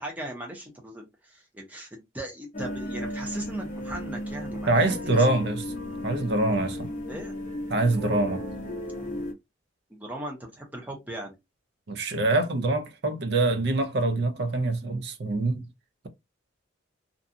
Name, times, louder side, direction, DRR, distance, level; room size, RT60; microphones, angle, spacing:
voice 1, 0.0-5.3 7.1-7.3 9.9-11.3, right 1 dB, 10° right, 0.7 m, -38 dB
sound 1, 2.5-9.3, left 1 dB, 35° left, 0.7 m, -35 dB
voice 2, 4.7-5.6 6.0-6.9 7.7-8.4 11.9-15.7, right 2 dB, 55° right, 0.5 m, -25 dB
2.6 x 2.3 x 2.6 m
head